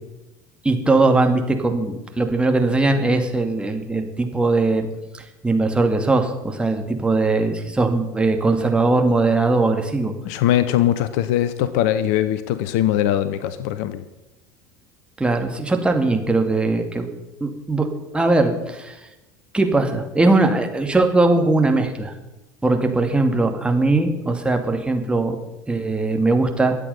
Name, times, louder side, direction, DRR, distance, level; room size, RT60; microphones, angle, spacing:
voice 1, 0.6-4.9 5.1-10.1 15.2-17.1 17.4-17.9 18.1-19.1 19.5-22.1 22.6-25.4 25.7-26.8, right 2 dB, 10° right, 4 dB, 2.2 m, -20 dB
voice 2, 10.2-14.0, left 12 dB, 55° left, 14 dB, 0.9 m, -21 dB
23.0 x 8.4 x 5.5 m, 1.0 s
figure-of-eight pair, 70°, 10 cm